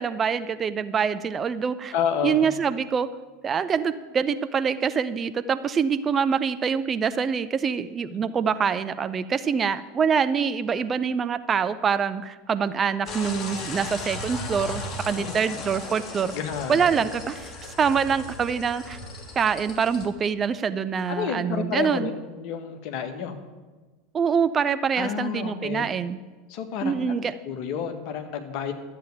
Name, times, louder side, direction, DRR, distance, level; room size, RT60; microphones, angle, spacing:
voice 1, 0.0-1.9 2.2-3.1 3.4-16.3 16.7-19.0 19.4-22.1 24.1-26.2 26.8-27.3, right 6 dB, 25° right, 12 dB, 0.5 m, -25 dB
voice 2, 1.9-2.5 8.1-8.3 15.2-15.4 16.3-17.1 21.1-23.4 25.0-25.8 26.5-27.0 27.4-28.7, left 7 dB, 50° left, 5 dB, 1.6 m, -30 dB
sound 1, 13.1-20.1, left 2 dB, 25° left, 2.6 m, -36 dB
12.5 x 7.6 x 9.1 m, 1.3 s
figure-of-eight pair, 80°, 0 cm